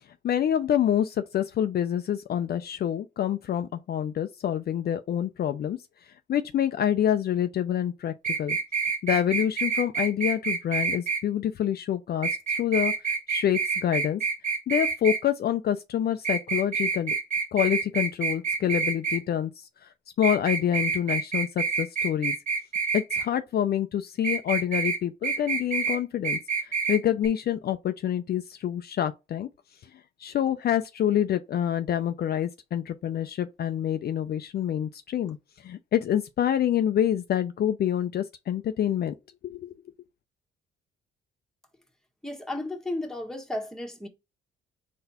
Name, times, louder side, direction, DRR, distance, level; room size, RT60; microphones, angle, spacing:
voice 1, 0.2-5.8 6.3-8.6 9.0-14.2 14.7-17.1 17.5-19.7 20.2-22.4 22.9-29.5 30.2-39.2 39.4-39.7, left 10 dB, 55° left, 0.5 m, -27 dB
sound 1, 8.2-11.2 12.2-15.2 16.2-19.2 20.2-23.3 24.2-25.0 25.2-26.0 26.2-27.0 27.2-27.3, right 5 dB, 40° right, 1.5 m, -27 dB
voice 2, 42.2-44.1, left 1 dB, ahead, 1.3 m, -33 dB
4.0 x 2.6 x 4.1 m
cardioid pair, 90°, 20 cm